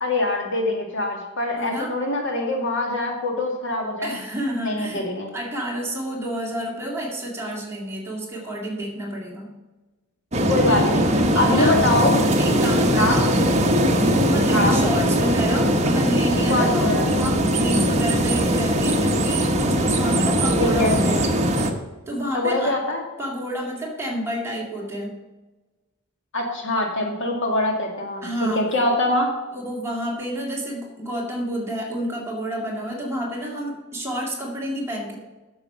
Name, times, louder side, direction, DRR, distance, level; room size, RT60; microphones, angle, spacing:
voice 1, 0.0-4.1 4.6-5.3 10.5-12.2 13.0-13.2 14.5-14.8 16.5-17.1 20.6-20.9 22.3-23.0 26.3-29.3, left 2 dB, 55° left, 1 dB, 2.0 m, -23 dB
voice 2, 1.6-1.9 4.0-9.6 11.3-11.8 12.4-13.3 13.9-21.4 22.1-22.8 23.2-25.2 28.2-28.7 29.5-35.2, equal, 10° right, -2 dB, 2.2 m, -29 dB
sound 1, 10.3-21.7, equal, 30° right, 1.0 m, -20 dB
9.7 x 7.0 x 5.5 m, 1.2 s
head